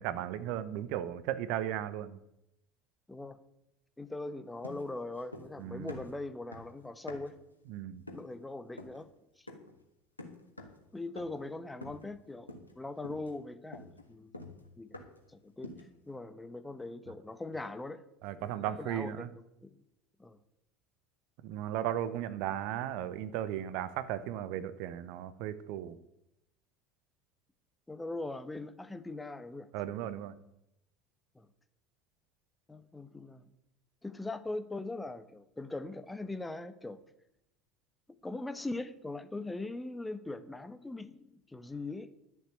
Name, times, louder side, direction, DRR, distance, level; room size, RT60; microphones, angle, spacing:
voice 1, 0.0-2.2 5.6-5.9 7.7-8.0 18.2-19.3 21.4-25.9 29.7-30.3, right 11 dB, 60° right, 14 dB, 0.8 m, -36 dB
voice 2, 3.1-3.4 4.0-7.3 8.1-9.1 9.3-9.5 10.9-12.5 12.8-14.3 14.8-15.0 15.3-18.1 18.4-19.3 19.6-19.7 20.2-20.4 27.9-29.7 31.3-31.5 32.7-33.5 34.0-37.0 38.2-42.1, left 2 dB, 10° left, 11 dB, 1.1 m, -41 dB
sound 1, 4.6-5.6 5.9-7.5 8.1-8.4 8.8-9.0 9.5-9.8 10.2-10.8 11.2-11.5 11.8-12.2 12.5-12.8 13.0-15.3 15.6-16.0, left 2 dB, 90° left, 1.5 m, -48 dB
11.0 x 7.3 x 9.4 m, 0.83 s
figure-of-eight pair, 70°, 0 cm